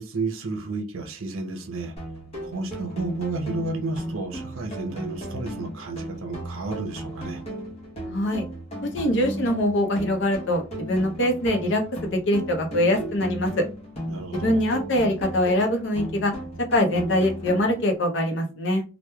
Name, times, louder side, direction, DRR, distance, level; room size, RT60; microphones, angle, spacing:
voice 1, 0.0-1.9 2.4-7.4 14.1-14.6, right 3 dB, 80° right, 0.6 m, -31 dB
sound 1, 2.0-18.0, right 1 dB, 30° left, 0.9 m, -36 dB
voice 2, 8.1-8.4 8.9-13.6 14.3-16.3 16.7-18.8, left 1 dB, 60° left, 0.6 m, -23 dB
2.9 x 2.1 x 2.2 m
head